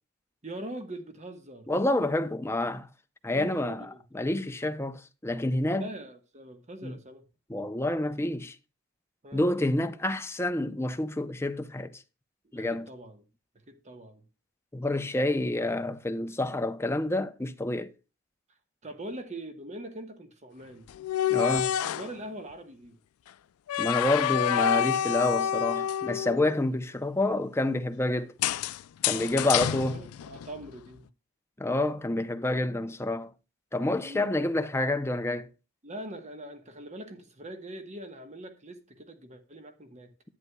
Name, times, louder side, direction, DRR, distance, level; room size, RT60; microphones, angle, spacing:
voice 1, 0.4-1.7 3.3-4.0 5.7-7.2 9.2-9.4 12.5-13.2 13.7-14.2 18.8-20.9 21.8-23.0 29.1-29.5 29.9-31.1 34.0-34.3 35.8-40.1, right 1 dB, 35° right, 1.1 m, -42 dB
voice 2, 1.7-2.9 3.2-3.9 4.1-5.9 6.8-7.0 7.5-8.6 9.3-12.0 12.5-12.9 14.7-17.9 21.3-21.7 23.8-28.3 29.0-30.0 31.6-33.3 33.7-35.5, left 2 dB, 10° left, 0.6 m, -28 dB
sound 1, 20.9-22.1 23.7-26.6 28.4-30.7, left 9 dB, 90° left, 0.3 m, -28 dB
11.0 x 9.2 x 2.3 m
head